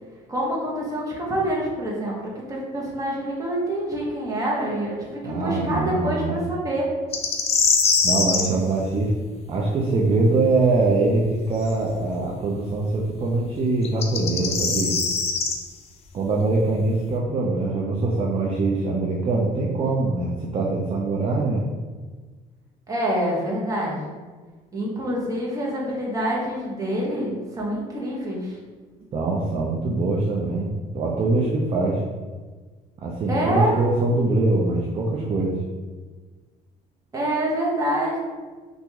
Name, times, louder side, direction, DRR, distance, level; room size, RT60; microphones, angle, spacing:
voice 1, 0.3-6.9 8.3-8.6 22.9-24.2 24.7-28.6 33.3-33.8 37.1-38.2, right 1 dB, 20° right, -4 dB, 1.0 m, -26 dB
voice 2, 5.2-6.4 8.0-9.1 9.5-15.0 16.1-21.7 29.1-32.0 33.0-35.6, right 3 dB, 35° right, -2 dB, 0.5 m, -23 dB
sound 1, 7.1-8.5 11.6-11.7 13.8-15.6, left 5 dB, 40° left, 0.5 m, -22 dB
2.9 x 2.6 x 3.5 m, 1.4 s
cardioid pair, 110°, 17 cm